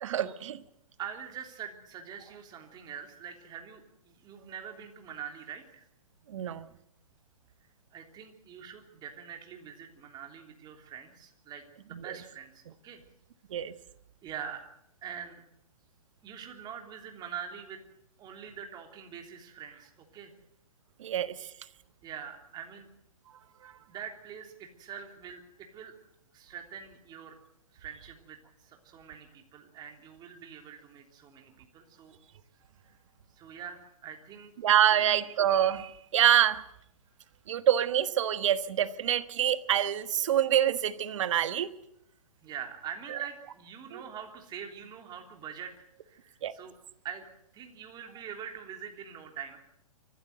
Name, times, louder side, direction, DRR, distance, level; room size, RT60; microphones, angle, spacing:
voice 1, 0.0-0.6 6.3-6.7 11.9-12.0 13.5-13.7 21.0-21.3 34.6-36.6 37.5-41.7 43.9-44.0 46.4-46.5, right 10 dB, 55° right, 13 dB, 1.3 m, -26 dB
voice 2, 1.0-5.8 7.9-13.0 14.2-14.6 15.0-15.4 16.2-17.8 18.2-20.3 22.0-22.9 23.9-25.9 26.3-27.4 27.7-32.2 32.9-33.0 33.3-34.5 34.9-35.2 42.4-46.7 47.0-47.3 47.5-49.6, right 8 dB, 20° right, 4 dB, 3.2 m, -44 dB
24.5 x 15.0 x 7.9 m, 0.80 s
hypercardioid pair, 125°, 18 cm